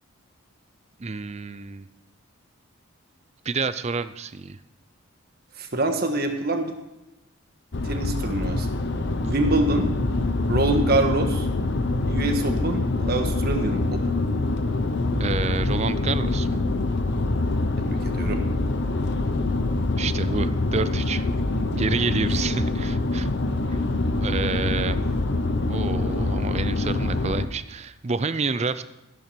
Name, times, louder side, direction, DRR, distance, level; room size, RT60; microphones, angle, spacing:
voice 1, 1.0-1.9 3.4-4.6 15.2-16.5 20.0-21.3 21.8-23.3 23.7-23.8 24.2-25.0 25.7-28.8, right 4 dB, 30° right, 13 dB, 0.5 m, -29 dB
voice 2, 5.6-6.7 7.8-8.7 9.2-9.9 10.5-11.5 12.1-14.2 17.8-18.4 21.7-21.8, right 2 dB, 45° right, 5 dB, 1.5 m, -25 dB
sound 1, 7.7-27.5, left 2 dB, 55° left, 0.8 m, -25 dB
14.0 x 11.0 x 4.5 m, 0.94 s
head